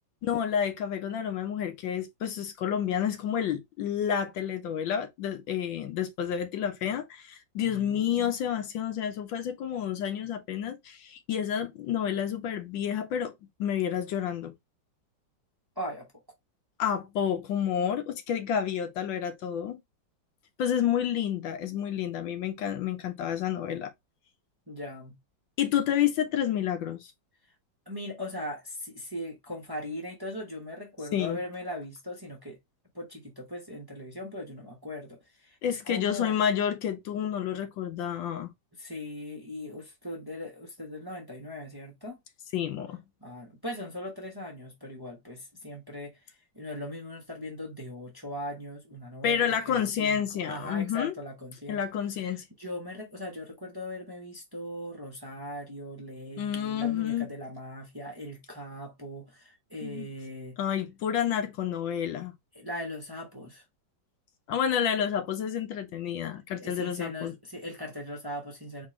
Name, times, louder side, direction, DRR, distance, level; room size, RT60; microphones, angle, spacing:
voice 1, 0.2-13.3 13.6-14.5 16.8-19.8 20.6-23.9 25.6-27.1 31.1-31.4 35.6-38.5 42.5-43.0 49.2-51.1 51.7-52.5 56.4-57.3 59.8-60.1 60.6-62.3 64.5-67.3, left 9 dB, 80° left, 1.5 m, -29 dB
voice 2, 7.6-8.3 15.8-16.1 24.7-25.2 27.9-32.6 32.9-36.4 38.8-42.2 43.2-46.2 46.5-51.8 52.3-60.6 62.5-63.6 66.5-68.9, left 1 dB, 15° right, 0.9 m, -39 dB
4.3 x 3.5 x 3.2 m
omnidirectional pair, 2.1 m